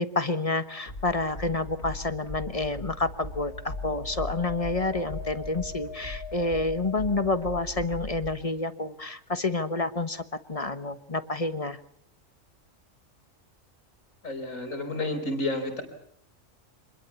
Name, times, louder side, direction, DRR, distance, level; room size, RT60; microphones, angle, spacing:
voice 1, 0.0-11.8, left 2 dB, 30° left, 11 dB, 1.2 m, -29 dB
sound 1, 0.9-8.4, left 2 dB, 55° left, 3.6 m, -39 dB
sound 2, 2.8-7.6, left 5 dB, 65° right, 2.4 m, -43 dB
voice 2, 14.2-15.8, left 2 dB, 75° left, 6 dB, 4.8 m, -30 dB
26.0 x 21.5 x 7.1 m, 0.67 s
omnidirectional pair, 1.4 m